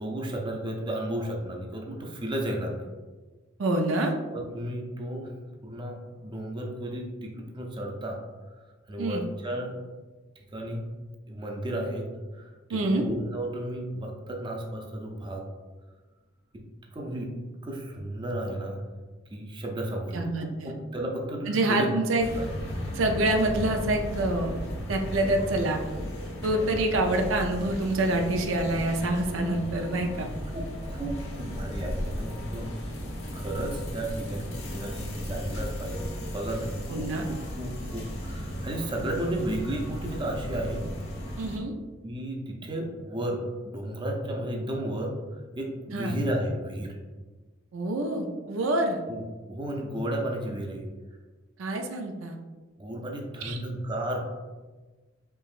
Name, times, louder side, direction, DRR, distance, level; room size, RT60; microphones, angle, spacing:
voice 1, 0.0-2.9 4.3-5.3 5.6-8.2 8.9-9.8 10.4-10.9 11.3-15.4 16.5-16.6 16.9-17.3 17.6-21.9 22.4-22.5 22.8-22.9 28.8-29.0 30.1-30.3 30.5-32.7 33.3-40.9 42.0-47.0 49.1-50.9 52.8-54.3, right 1 dB, 25° right, 0 dB, 0.5 m, -33 dB
voice 2, 3.6-4.1 9.0-9.2 12.7-13.0 20.1-20.7 21.5-22.3 22.9-24.5 24.9-25.8 26.4-30.3 36.9-37.2 41.4-41.7 45.9-46.2 47.7-49.0 51.6-52.4 53.4-53.6, right 2 dB, 80° right, 4 dB, 0.5 m, -26 dB
sound 1, 22.2-41.6, equal, 80° left, 1.1 m, -35 dB
4.5 x 3.1 x 2.4 m, 1.3 s
head